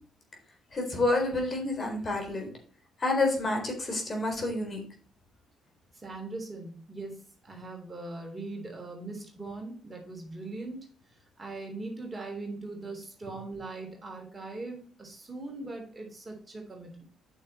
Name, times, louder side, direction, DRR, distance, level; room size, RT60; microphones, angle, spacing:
voice 1, 0.7-2.5 3.0-4.8, left 2 dB, 35° left, 3 dB, 3.9 m, -28 dB
voice 2, 5.9-10.9 11.4-17.0, right 2 dB, 20° right, 1 dB, 3.2 m, -40 dB
9.0 x 6.5 x 4.3 m, 0.43 s
cardioid pair, 90°, 0 cm